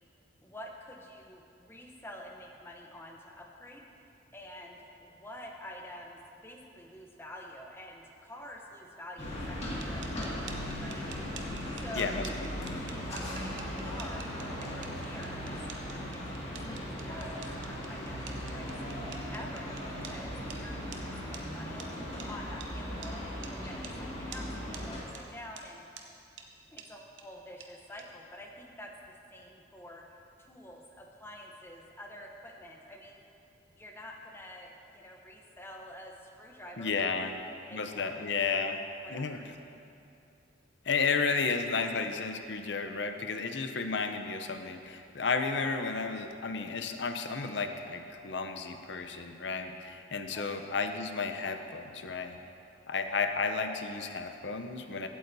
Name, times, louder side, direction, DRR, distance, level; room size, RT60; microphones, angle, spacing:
voice 1, 0.4-11.1 11.7-12.3 12.6-15.6 15.9-19.0 19.3-25.8 26.7-33.2 33.7-39.5 50.3-50.7, left 1 dB, 10° left, 1 dB, 0.8 m, -48 dB
sound 1, 9.2-25.0, equal, 35° left, 2.0 m, -38 dB
sound 2, 9.8-20.2 20.5-20.6 20.9-21.0 21.3-21.4 21.8-21.9 22.2-22.3 22.6-22.7 23.0-23.1 23.4-23.5 23.8-24.0 24.3-24.4 24.7-24.8 25.1-25.2 25.6-25.7 26.0-26.1 26.4-26.5 26.8-26.9 27.2-27.3 27.6-27.7 28.0-28.1, right 7 dB, 75° right, 0.8 m, -47 dB
voice 2, 36.8-37.3 37.7-38.8 39.1-39.4 40.9-52.4 52.9-55.1, left 4 dB, 65° left, 7 dB, 0.6 m, -32 dB
16.0 x 8.6 x 2.7 m, 2.6 s
head